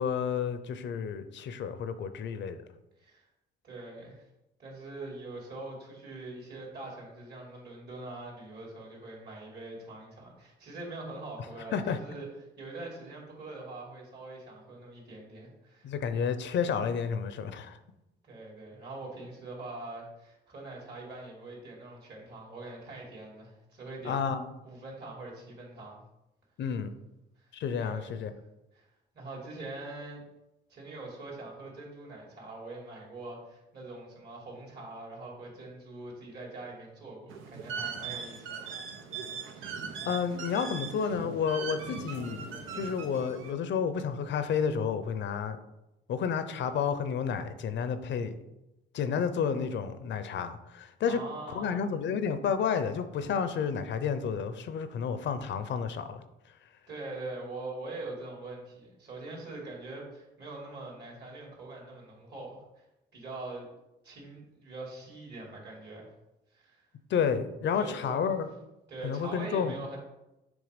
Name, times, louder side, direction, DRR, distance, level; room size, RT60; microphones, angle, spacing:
voice 1, 0.0-2.6 11.7-12.0 15.8-17.8 24.0-24.5 26.6-26.9 27.5-28.3 40.1-45.6 46.1-48.4 48.9-51.2 51.5-56.2 67.1-68.5 69.0-69.8, left 6 dB, 65° left, 11 dB, 0.7 m, -31 dB
voice 2, 3.6-4.2 4.6-12.3 12.6-15.9 18.3-24.2 24.6-26.0 27.8-28.2 28.7-28.9 29.1-30.2 30.7-38.7 51.1-51.8 56.9-62.9 63.1-63.7 64.0-66.1 66.5-66.8 67.8-68.4 68.9-70.0, right 2 dB, 55° right, -2 dB, 2.6 m, -43 dB
sound 1, 37.3-43.5, right 5 dB, 85° right, 0.8 m, -40 dB
7.3 x 3.2 x 5.2 m, 0.94 s
cardioid pair, 90°, 20 cm